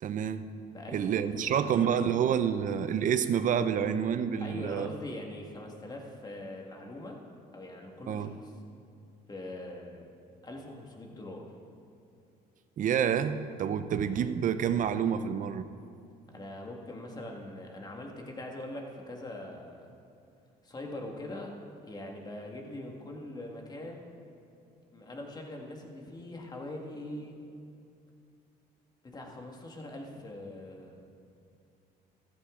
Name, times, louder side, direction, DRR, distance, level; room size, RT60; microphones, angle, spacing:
voice 1, 0.0-0.5 0.9-4.9 8.1-8.3 12.8-15.7, right 8 dB, 50° right, 11 dB, 0.6 m, -28 dB
voice 2, 0.7-2.0 4.4-7.2 7.5-8.5 9.3-10.1 10.4-11.5 16.3-19.9 20.6-21.5 21.8-24.2 24.9-27.4 29.0-31.0, left 1 dB, 25° left, 1 dB, 1.9 m, -42 dB
14.0 x 13.0 x 3.8 m, 2.5 s
cardioid pair, 110°, 17 cm